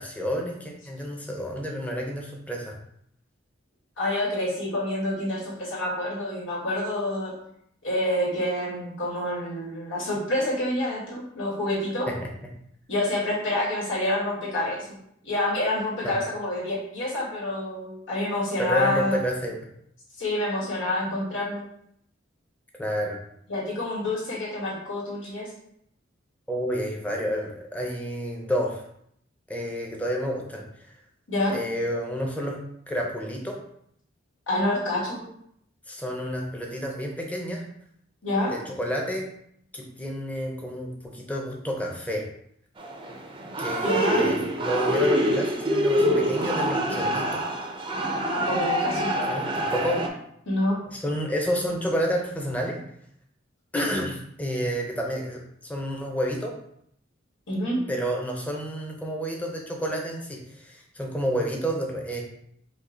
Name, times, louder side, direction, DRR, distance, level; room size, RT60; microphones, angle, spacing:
voice 1, 0.0-2.8 12.1-12.3 16.0-16.2 18.6-19.6 22.8-23.2 26.5-28.8 29.5-30.6 31.5-32.6 32.9-33.6 35.9-37.6 38.5-39.3 39.7-42.3 43.6-47.4 49.3-50.0 50.9-52.8 53.7-56.6 57.9-62.2, equal, 10° left, 0 dB, 0.7 m, -30 dB
voice 2, 4.0-7.3 7.8-12.1 12.9-15.0 15.2-19.2 20.2-21.6 23.5-25.5 31.3-31.6 34.5-35.3 38.2-38.5 43.8-44.3 48.3-49.1 50.5-50.8 57.5-57.8, left 1 dB, 85° left, -4 dB, 1.8 m, -27 dB
sound 1, 42.8-50.1, equal, 25° right, 0.5 m, -25 dB
5.2 x 2.3 x 3.9 m, 0.70 s
head